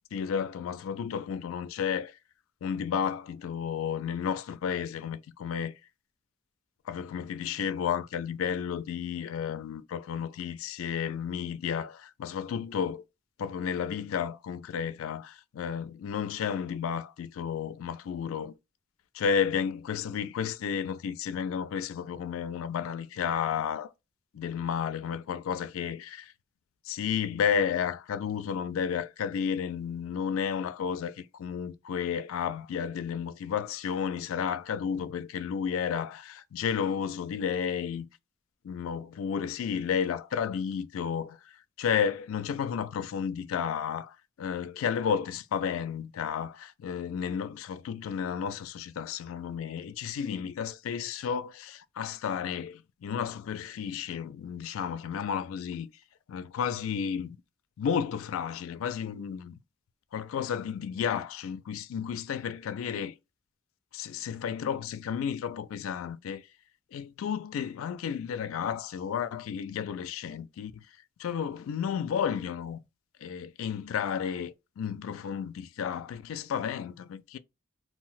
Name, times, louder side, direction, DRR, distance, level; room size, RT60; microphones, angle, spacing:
voice 1, 0.1-2.2 2.6-5.7 6.9-13.0 13.4-18.5 19.1-23.9 24.4-26.3 26.9-38.1 38.6-41.5 41.8-55.9 56.3-57.4 57.8-59.6 60.1-63.1 63.9-66.4 66.9-70.8 71.2-72.8 73.2-77.4, left 7 dB, 90° left, 0.3 m, -32 dB
2.4 x 2.1 x 3.8 m
head